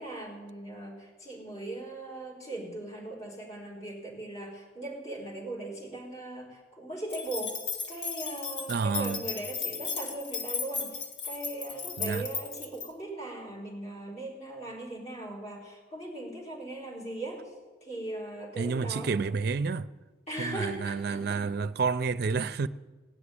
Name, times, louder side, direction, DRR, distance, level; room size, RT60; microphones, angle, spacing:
voice 1, 0.0-7.6 7.9-17.5 17.8-19.1 20.3-21.4, right 2 dB, 35° left, 4.1 m, -39 dB
sound 1, 7.1-12.9, left 5 dB, 75° left, 1.8 m, -35 dB
voice 2, 8.7-9.2 12.0-12.3 18.6-19.9 20.4-22.7, right 4 dB, 55° right, 0.4 m, -29 dB
17.5 x 6.0 x 9.8 m
head